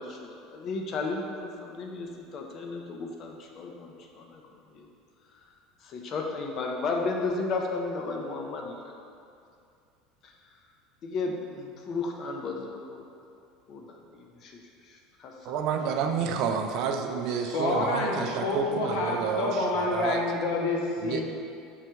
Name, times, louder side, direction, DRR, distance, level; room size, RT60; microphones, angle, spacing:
voice 1, 0.0-4.9 5.8-8.9 10.2-10.3 11.0-13.1 13.7-15.6, left 3 dB, 35° left, 1 dB, 0.4 m, -34 dB
voice 2, 15.4-20.2 21.0-21.2, right 6 dB, 50° right, 5 dB, 0.3 m, -30 dB
voice 3, 17.4-21.2, left 2 dB, 75° left, -1 dB, 0.7 m, -28 dB
6.2 x 2.2 x 2.9 m, 2.5 s
cardioid pair, 165°, 0 cm